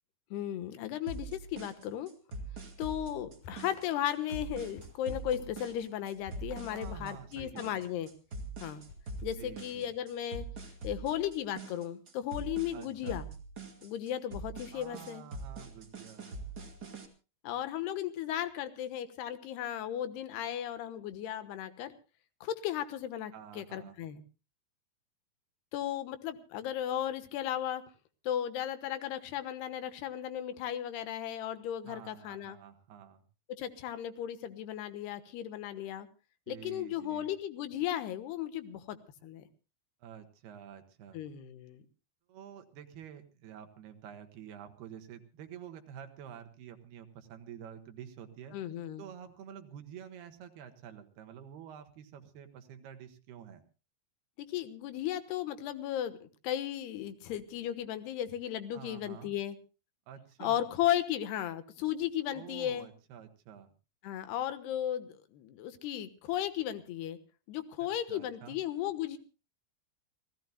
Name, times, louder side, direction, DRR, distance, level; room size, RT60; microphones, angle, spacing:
voice 1, 0.3-2.1 2.8-8.1 8.6-8.8 9.2-13.3 13.8-15.2 17.4-21.9 22.4-24.2 25.7-27.8 28.2-32.6 33.5-36.1 36.5-39.0 39.2-39.4 41.1-41.8 48.5-49.0 54.4-59.6 60.4-62.9 64.0-67.2 67.5-69.2, left 11 dB, 85° left, 11 dB, 3.3 m, -35 dB
sound 1, 1.1-17.1, right 3 dB, 30° right, 2.2 m, -43 dB
sound 2, 3.4-8.3 8.9-10.1, left 3 dB, 60° left, 5.7 m, -55 dB
voice 2, 6.7-7.8 9.4-9.9 12.7-13.3 14.7-16.6 23.3-24.0 31.8-33.2 36.5-37.3 40.0-41.2 42.3-48.6 49.0-53.6 58.7-59.3 60.1-60.7 62.3-63.7 67.8-68.6, right 9 dB, 80° right, 7 dB, 3.5 m, -49 dB
28.0 x 17.0 x 2.3 m, 0.33 s
omnidirectional pair, 4.6 m